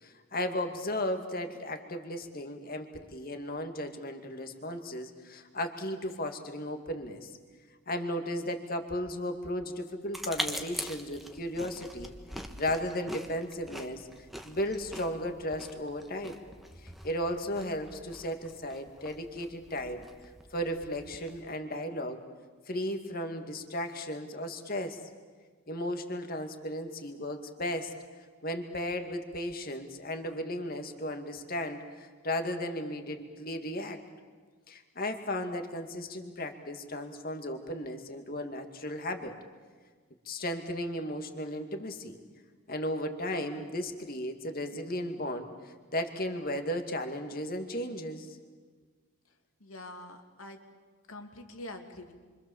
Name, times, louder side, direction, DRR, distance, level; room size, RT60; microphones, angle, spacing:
voice 1, 0.0-7.3 7.9-12.1 12.6-14.1 14.4-16.4 16.8-22.2 22.7-25.0 25.7-27.9 28.4-34.0 34.7-39.4 40.3-42.2 42.7-48.4, left 1 dB, 45° left, 6 dB, 2.3 m, -35 dB
sound 1, 10.1-21.4, equal, ahead, 1.4 m, -43 dB
voice 2, 49.6-50.6 51.1-52.1, left 1 dB, 75° left, 4 dB, 2.8 m, -45 dB
28.0 x 25.0 x 7.3 m, 1.5 s
head